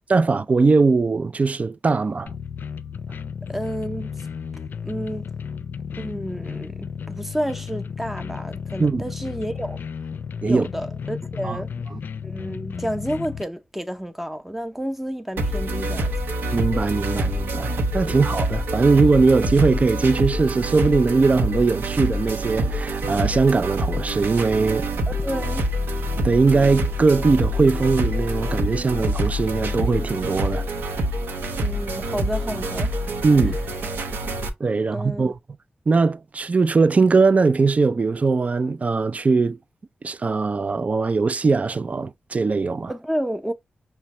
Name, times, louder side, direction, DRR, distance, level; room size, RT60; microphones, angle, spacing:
voice 1, 0.1-2.3 8.8-9.0 10.4-10.7 11.4-11.6 16.5-24.9 26.2-30.7 33.2-33.6 34.6-35.4 35.9-39.6 40.0-42.9, right 4 dB, 40° right, 0.4 m, -20 dB
sound 1, 2.3-13.4, left 6 dB, 70° left, 0.4 m, -33 dB
voice 2, 3.5-4.2 4.8-5.3 5.9-9.8 10.4-11.7 12.2-16.1 18.0-18.2 25.1-25.6 31.6-33.1 34.9-35.3 42.9-43.5, equal, 5° right, 0.7 m, -30 dB
sound 2, 15.4-34.5, equal, 85° right, 0.8 m, -26 dB
5.6 x 2.2 x 2.9 m
cardioid pair, 50°, 4 cm